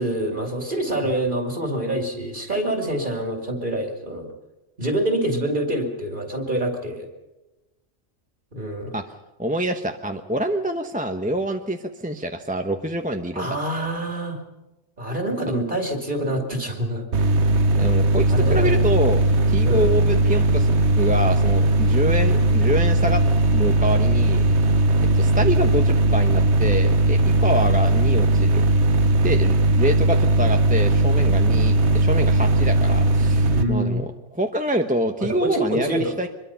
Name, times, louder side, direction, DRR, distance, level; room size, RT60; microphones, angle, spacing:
voice 1, 0.0-4.3 4.8-7.1 8.5-9.0 13.3-14.4 15.0-17.1 18.3-18.8 19.6-20.1 33.5-34.0 35.2-36.1, right 1 dB, 40° right, 3 dB, 2.6 m, -26 dB
voice 2, 9.4-13.5 17.7-23.2 23.5-24.4 25.1-28.6 29.2-34.1 34.3-36.3, right 1 dB, 5° right, 5 dB, 0.8 m, -26 dB
sound 1, 17.1-33.6, right 2 dB, 60° right, 1.4 m, -18 dB
24.0 x 22.0 x 5.7 m, 1.1 s
omnidirectional pair, 1.3 m